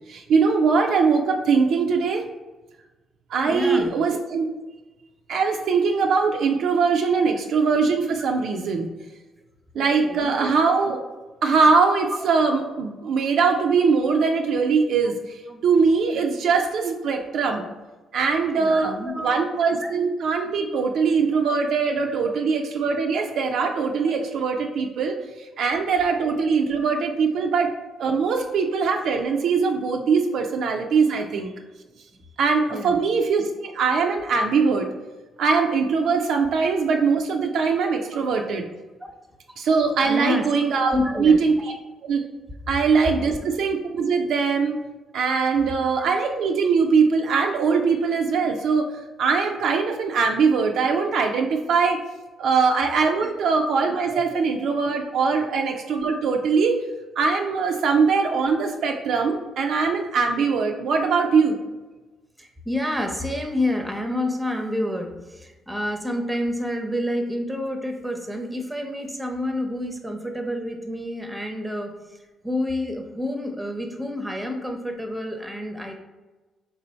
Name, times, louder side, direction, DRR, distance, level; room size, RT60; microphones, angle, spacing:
voice 1, 0.1-2.2 3.3-4.5 5.3-8.9 9.7-11.0 11.4-15.2 15.6-17.7 18.1-27.7 28.0-31.5 32.4-34.9 35.4-38.7 39.6-41.7 42.1-42.2 42.7-44.8 45.1-48.9 49.2-52.0 52.4-56.8 57.2-61.6, right 5 dB, 75° right, 2 dB, 0.4 m, -21 dB
voice 2, 3.4-3.9 9.7-10.4 15.5-15.6 16.2-16.3 18.6-19.5 19.8-20.0 22.2-22.4 24.0-24.2 27.4-27.5 30.4-30.5 32.7-33.0 37.8-37.9 40.0-40.5 40.9-41.4 45.8-45.9 54.1-54.2 55.3-55.5 62.4-71.9 72.4-76.0, left 1 dB, 10° right, 4 dB, 0.7 m, -29 dB
3.6 x 2.7 x 4.2 m, 1.2 s
cardioid pair, 90°, 0 cm